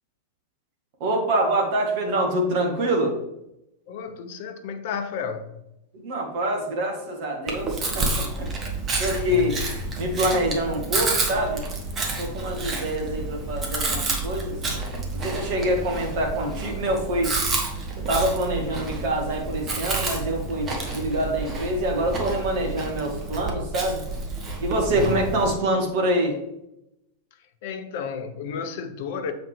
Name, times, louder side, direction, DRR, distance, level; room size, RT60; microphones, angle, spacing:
voice 1, 1.0-3.1 5.9-8.5 9.0-9.5 10.0-11.6 12.2-14.6 15.1-17.3 18.1-24.0 24.6-26.3, right 1 dB, 50° right, 1.7 m, -25 dB
voice 2, 3.9-5.5 9.2-9.5 24.9-25.2 27.6-29.3, left 6 dB, 50° left, 0.7 m, -32 dB
Chewing mastication, 7.5-25.5, right 3 dB, 25° right, 1.3 m, -29 dB
7.5 x 5.0 x 3.3 m
figure-of-eight pair, 90°, 0 cm